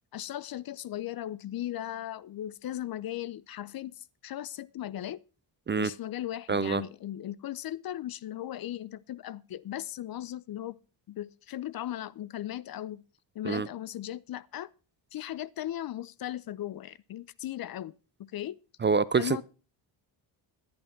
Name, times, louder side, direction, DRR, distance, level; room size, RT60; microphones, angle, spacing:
voice 1, 0.1-5.2 5.8-10.8 11.1-13.0 13.3-14.7 15.1-17.9 18.2-18.6 19.2-19.4, left 12 dB, 50° left, 0.6 m, -37 dB
voice 2, 6.5-6.8 13.4-13.7 18.8-19.4, right 5 dB, 25° right, 0.4 m, -26 dB
11.5 x 10.5 x 4.4 m
cardioid pair, 75°, 48 cm